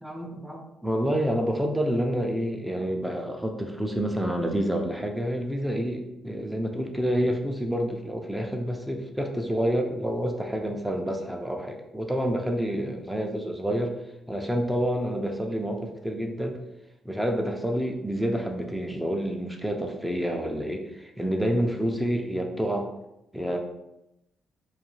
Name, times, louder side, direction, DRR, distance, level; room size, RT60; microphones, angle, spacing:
voice 1, 0.0-14.0 14.3-16.6 17.1-22.9 23.3-23.6, equal, 5° right, 2 dB, 0.3 m, -28 dB
2.3 x 2.2 x 3.0 m, 0.89 s
cardioid pair, 90°, 0 cm